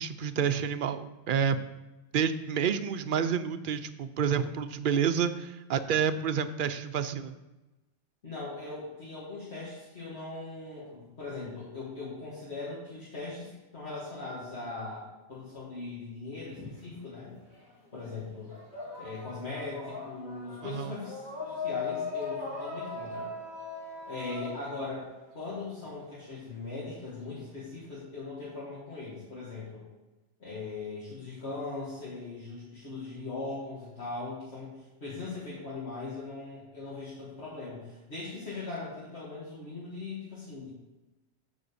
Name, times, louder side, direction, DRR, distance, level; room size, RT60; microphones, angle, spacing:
voice 1, 0.0-1.6 2.1-7.3 20.6-20.9, right 7 dB, 55° right, 10 dB, 0.7 m, -29 dB
voice 2, 8.2-17.3 17.9-18.5 19.0-23.3 24.0-25.1 25.3-29.8 30.4-40.7, left 3 dB, 70° left, -8 dB, 2.5 m, -40 dB
sound 1, 16.5-17.7 18.0-25.8, left 4 dB, 20° left, 3.4 m, -39 dB
8.9 x 4.9 x 6.9 m, 1.1 s
omnidirectional pair, 1.2 m